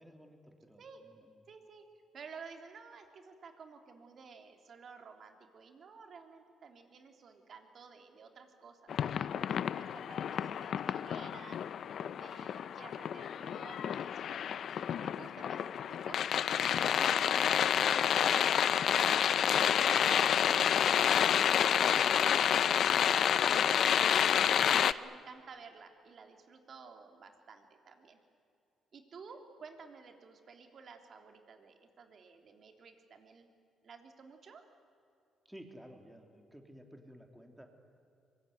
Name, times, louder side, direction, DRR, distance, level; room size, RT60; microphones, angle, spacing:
voice 1, 0.0-1.4 14.7-14.9 21.9-22.2 35.4-37.7, equal, 5° right, 4 dB, 3.1 m, -54 dB
voice 2, 0.8-1.1 1.5-1.9 2.1-11.6 12.0-16.2 16.8-19.6 19.9-21.1 21.9-24.3 24.5-28.2 28.9-33.5 33.8-34.6, right 5 dB, 55° right, 5 dB, 3.3 m, -53 dB
sound 1, 8.9-24.9, left 9 dB, 65° left, 0.6 m, -29 dB
24.0 x 22.0 x 9.6 m, 2.6 s
cardioid pair, 90°, 0 cm